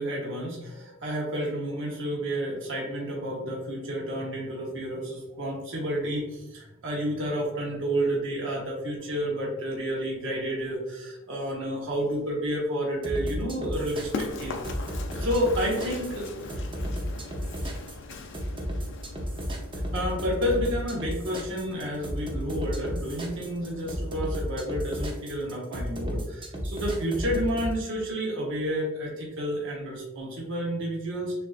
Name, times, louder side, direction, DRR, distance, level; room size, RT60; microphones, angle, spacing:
voice 1, 0.0-14.5 15.2-16.3 19.9-31.3, equal, 65° right, -3 dB, 1.0 m, -30 dB
sound 1, 13.0-27.7, equal, 25° right, 0.7 m, -33 dB
Run, 13.8-24.3, left 3 dB, 60° left, 0.5 m, -41 dB
6.6 x 2.6 x 2.4 m, 0.98 s
head